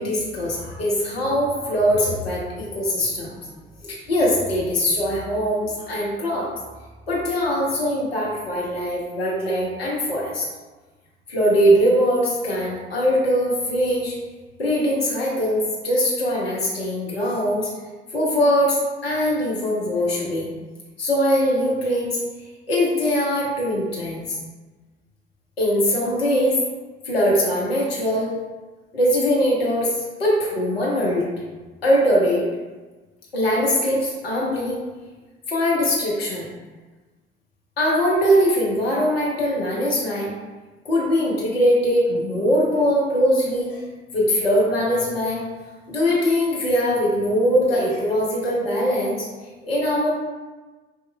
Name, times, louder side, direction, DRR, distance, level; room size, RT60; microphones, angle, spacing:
voice 1, 0.0-3.4 3.8-6.5 7.1-10.5 11.3-14.1 14.6-17.7 18.1-20.5 21.0-22.2 22.7-24.4 25.6-26.6 27.0-28.3 28.9-31.3 31.8-32.4 33.3-34.8 35.5-36.5 37.8-40.3 40.8-43.8 44.1-45.4 45.9-49.3 49.6-50.1, equal, 90° left, -5 dB, 0.8 m, -21 dB
5.3 x 3.0 x 2.2 m, 1.3 s
hypercardioid pair, 55°, 30 cm